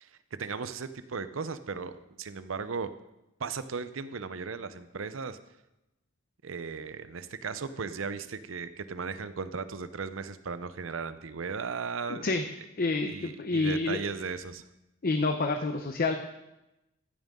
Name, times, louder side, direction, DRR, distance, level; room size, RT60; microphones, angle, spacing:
voice 1, 0.0-2.9 3.4-5.4 6.4-12.3 13.0-14.6, right 5 dB, 75° right, 13 dB, 0.7 m, -36 dB
voice 2, 12.1-12.5 12.8-14.0 15.0-16.2, left 3 dB, 45° left, 6 dB, 0.7 m, -28 dB
14.5 x 9.1 x 3.7 m, 0.94 s
head